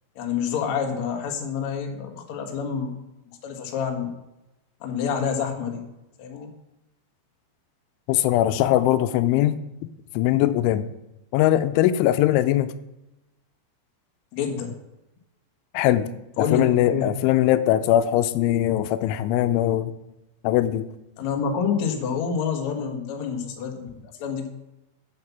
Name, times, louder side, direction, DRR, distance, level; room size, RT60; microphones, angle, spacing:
voice 1, 0.2-3.0 3.4-4.1 4.8-5.8 6.2-6.5 14.3-14.7 16.4-17.1 21.2-24.5, left 6 dB, 65° left, 3 dB, 1.8 m, -27 dB
voice 2, 8.1-9.6 10.2-10.9 11.3-12.7 15.7-16.1 16.5-19.9 20.4-20.8, left 13 dB, 85° left, 11 dB, 3.0 m, -20 dB
8.6 x 7.6 x 7.1 m, 0.95 s
omnidirectional pair, 5.4 m